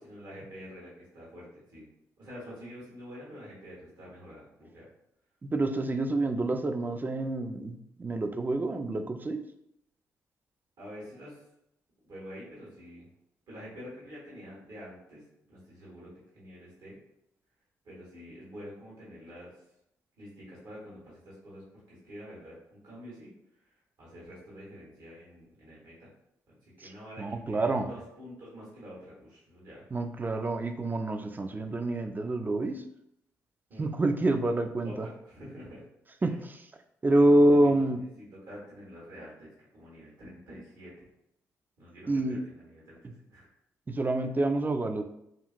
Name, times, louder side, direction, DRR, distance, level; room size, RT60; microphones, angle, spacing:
voice 1, 0.0-1.9 2.2-4.9 10.8-11.4 12.0-13.1 13.5-17.0 17.8-19.6 20.2-23.3 23.6-26.1 26.6-29.8 33.7-33.8 34.8-35.8 36.2-36.3 37.1-41.1 41.8-43.5, equal, 70° right, -6 dB, 1.4 m, -47 dB
voice 2, 5.4-9.4 26.8-26.9 27.2-27.9 29.9-32.8 33.8-35.1 36.2-36.7 37.0-38.0 42.1-42.4 43.9-45.0, right 1 dB, 25° right, 7 dB, 0.4 m, -27 dB
2.8 x 2.8 x 2.5 m, 0.78 s
supercardioid pair, 50°, 7 cm